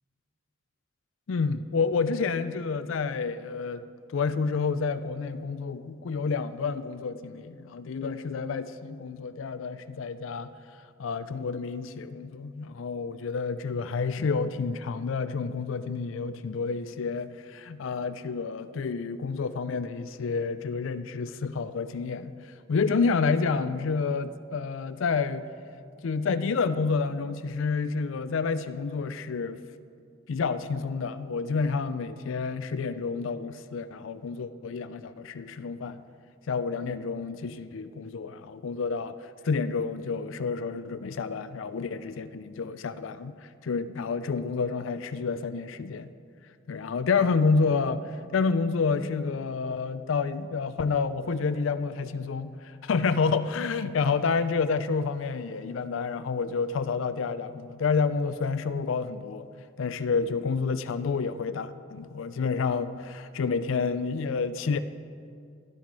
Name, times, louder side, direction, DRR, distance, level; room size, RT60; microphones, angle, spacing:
voice 1, 1.3-3.9 4.1-10.5 11.0-25.5 26.0-29.6 30.3-36.0 36.5-46.1 46.7-59.5 59.8-64.8, left 4 dB, 75° left, 12 dB, 0.4 m, -29 dB
11.5 x 11.5 x 4.7 m, 2.4 s
head